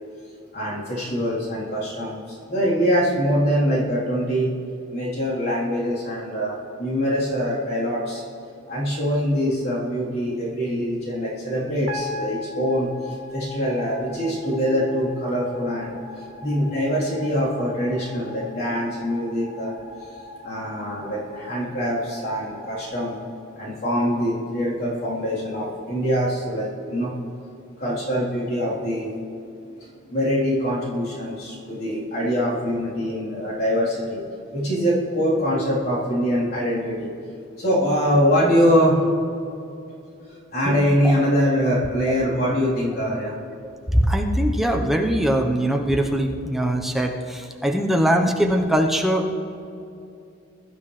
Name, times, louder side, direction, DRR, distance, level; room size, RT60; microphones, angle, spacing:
voice 1, 0.5-4.5 4.9-8.2 8.7-19.7 20.0-20.1 20.4-23.2 23.6-27.1 27.8-29.1 29.8-34.2 34.5-37.1 37.6-39.0 40.3-43.3, equal, 50° left, -8 dB, 3.7 m, -24 dB
sound 1, 11.9-24.1, left 3 dB, 75° right, 2.7 m, -40 dB
voice 2, 43.9-49.3, equal, ahead, 1 dB, 0.9 m, -21 dB
22.0 x 12.0 x 3.3 m, 2.7 s
head